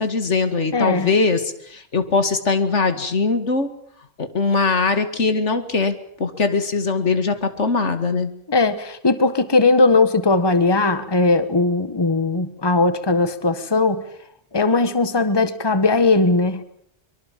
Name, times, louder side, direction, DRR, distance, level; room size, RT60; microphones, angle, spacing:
voice 1, 0.0-3.7 4.2-8.3, left 4 dB, 80° left, 9 dB, 2.4 m, -21 dB
voice 2, 0.7-1.1 8.5-14.0 14.5-16.6, left 3 dB, 20° left, 12 dB, 1.4 m, -18 dB
24.0 x 23.0 x 7.5 m, 0.66 s
omnidirectional pair, 1.2 m